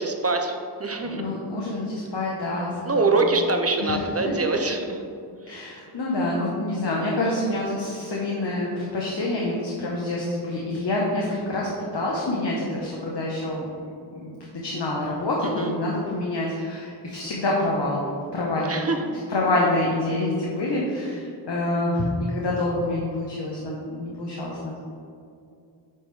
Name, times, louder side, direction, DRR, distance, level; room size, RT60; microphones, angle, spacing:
voice 1, 0.0-1.2 2.8-5.0 5.5-5.6 15.6-15.7 18.7-19.1, right 3 dB, 35° right, 4 dB, 0.6 m, -24 dB
voice 2, 1.0-3.1 3.8-4.3 5.5-13.7 14.2-18.7 19.3-24.8, left 2 dB, 75° left, -4 dB, 0.9 m, -27 dB
8.7 x 3.5 x 3.2 m, 2.5 s
wide cardioid pair, 80°, 42 cm